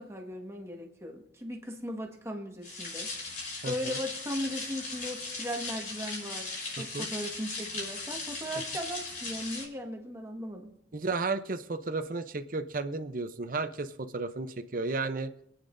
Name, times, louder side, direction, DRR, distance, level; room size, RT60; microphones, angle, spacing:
voice 1, 0.0-3.1 3.6-10.8, equal, 15° right, 1 dB, 1.5 m, -38 dB
sound 1, 2.6-9.7, left 3 dB, 50° left, 5.7 m, -38 dB
voice 2, 3.6-4.0 6.8-7.1 10.9-15.3, right 3 dB, 50° right, 8 dB, 0.7 m, -33 dB
26.0 x 9.5 x 2.6 m, 0.80 s
head